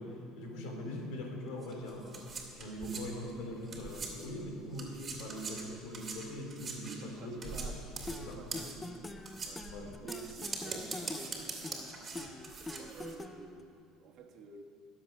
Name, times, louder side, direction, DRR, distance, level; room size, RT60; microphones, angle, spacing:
voice 1, 0.0-2.2 2.5-7.7 8.2-8.4 9.7-9.9, left 1 dB, 75° left, 1 dB, 3.3 m, -42 dB
sound 1, 1.6-4.4 4.7-13.1, right 4 dB, 25° right, 2.3 m, -43 dB
voice 2, 6.8-12.3 12.8-14.6, right 5 dB, 50° right, 2 dB, 1.6 m, -51 dB
sound 2, 8.1-13.6, left 2 dB, 15° left, 0.6 m, -44 dB
21.0 x 7.6 x 6.0 m, 2.5 s
cardioid pair, 145°, 0 cm